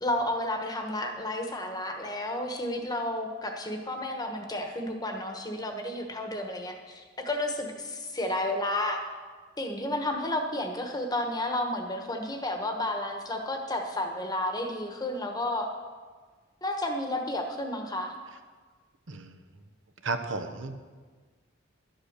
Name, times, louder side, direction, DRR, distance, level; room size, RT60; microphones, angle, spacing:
voice 1, 0.0-9.0 9.6-15.7 16.6-18.1, left 1 dB, 20° left, 4 dB, 1.2 m, -31 dB
voice 2, 20.0-20.7, right 3 dB, 75° right, 7 dB, 0.9 m, -33 dB
12.0 x 7.9 x 6.6 m, 1.5 s
head